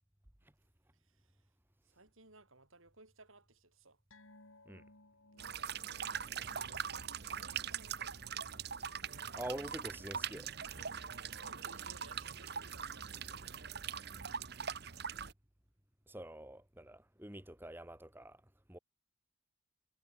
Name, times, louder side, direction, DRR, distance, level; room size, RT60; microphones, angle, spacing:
voice 1, 0.9-1.5 1.8-4.0 5.3-5.7 6.6-9.9 10.7-13.7, right 3 dB, 80° right, 7.5 m, -61 dB
sound 1, 4.1-10.9 11.2-11.4 11.8-11.9, left 2 dB, 80° left, 5.4 m, -65 dB
sound 2, 5.4-15.3, right 7 dB, 50° right, 1.1 m, -42 dB
voice 2, 9.3-10.5 16.1-18.4 18.7-18.8, right 1 dB, 10° right, 1.4 m, -46 dB
head